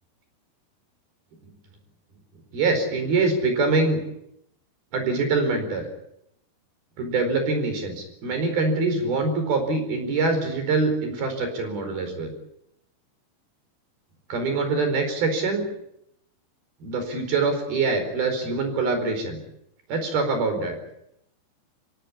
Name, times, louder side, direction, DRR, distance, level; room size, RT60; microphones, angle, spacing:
voice 1, 2.5-4.0 4.9-5.9 7.0-12.3 14.3-15.6 16.8-19.4 19.9-20.7, right 3 dB, 50° right, 6 dB, 6.2 m, -24 dB
25.5 x 16.5 x 9.8 m, 0.78 s
omnidirectional pair, 5.9 m